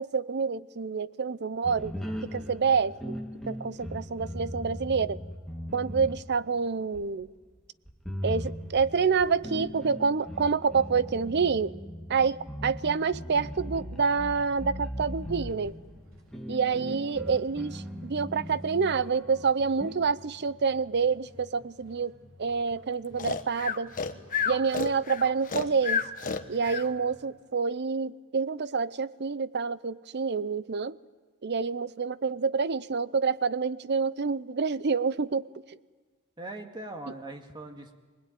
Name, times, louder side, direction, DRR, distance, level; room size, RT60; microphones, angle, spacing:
voice 1, 0.0-1.9 2.2-3.2 3.5-5.2 5.7-7.3 8.2-11.7 12.1-15.7 16.5-22.1 22.4-23.9 24.4-26.0 26.5-31.0 31.4-35.8, right 5 dB, 55° right, 17 dB, 0.7 m, -27 dB
sound 1, 1.6-6.6 6.9-7.0 7.9-20.0, equal, ahead, 1.6 m, -39 dB
sound 2, 15.1-27.3, left 1 dB, 70° right, 4.6 m, -55 dB
Breathing, 23.2-26.9, left 5 dB, 40° left, 1.2 m, -30 dB
voice 2, 36.4-38.0, right 2 dB, 20° right, 3 dB, 2.1 m, -41 dB
24.5 x 20.0 x 9.3 m, 1.4 s
head